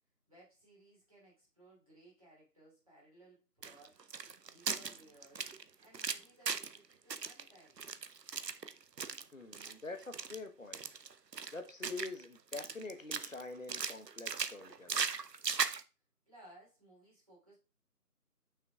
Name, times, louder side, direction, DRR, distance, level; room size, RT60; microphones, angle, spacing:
voice 1, 0.3-4.1 4.4-5.5 5.8-7.9 16.3-17.6, right 1 dB, 20° right, 3.1 m, -61 dB
sound 1, 3.6-6.8 7.1-9.2 9.5-9.7 10.0-10.4 10.7-12.2 12.5-13.4 13.7-15.8, right 5 dB, 85° right, 0.8 m, -38 dB
voice 2, 9.3-10.8 11.5-15.0, left 3 dB, 55° left, 1.2 m, -45 dB
6.9 x 6.2 x 3.5 m
figure-of-eight pair, 175°, 48 cm